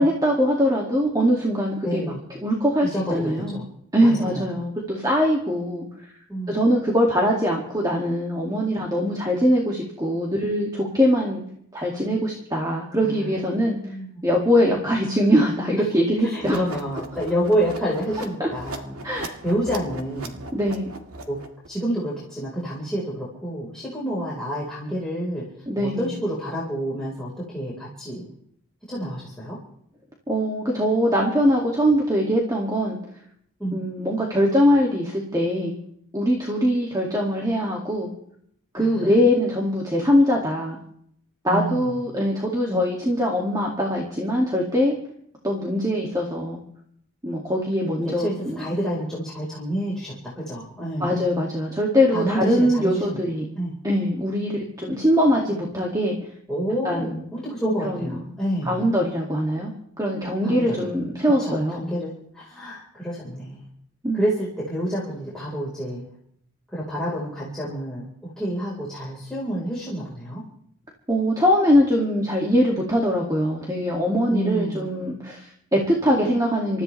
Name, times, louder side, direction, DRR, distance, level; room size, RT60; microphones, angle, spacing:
voice 1, 0.0-2.1 2.4-3.6 3.9-6.1 6.5-11.4 11.7-13.9 14.2-16.6 18.4-18.5 19.0-19.3 20.5-20.9 25.7-26.1 30.3-33.0 33.7-35.8 36.1-38.1 38.7-40.8 41.4-44.9 45.4-46.6 47.2-48.6 51.0-53.5 53.8-56.2 56.8-57.2 57.8-58.2 58.6-59.7 60.0-61.8 64.0-64.2 71.1-76.8, equal, 15° right, -2 dB, 2.3 m, -22 dB
voice 2, 1.8-2.2 2.8-3.6 4.0-4.5 6.3-6.6 13.0-13.4 13.9-14.1 16.2-18.9 19.4-20.4 21.2-21.4 21.7-25.4 25.7-28.2 28.9-29.6 33.6-33.8 38.8-39.1 41.5-42.0 42.7-42.8 48.0-51.1 52.1-53.2 53.6-53.7 56.5-58.9 60.4-60.9 61.2-63.6 64.1-66.1 66.7-70.4 74.3-74.9, right 1 dB, 5° left, -8 dB, 4.4 m, -28 dB
sound 1, 16.4-21.7, right 2 dB, 85° right, 2.1 m, -38 dB
28.0 x 14.5 x 3.3 m, 0.67 s
head